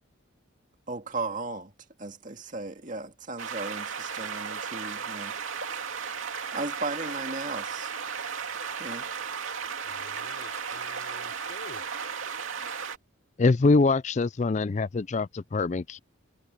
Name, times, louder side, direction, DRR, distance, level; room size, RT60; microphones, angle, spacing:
voice 1, 0.9-1.7 2.0-5.8 6.5-7.9 8.8-9.1, right 3 dB, 40° right, 2.1 m, -36 dB
sound 1, 3.4-13.0, right 6 dB, 75° right, 2.6 m, -35 dB
voice 2, 9.8-11.9, left 2 dB, 60° left, 6.1 m, -48 dB
voice 3, 13.4-16.0, left 3 dB, 35° left, 0.4 m, -24 dB
head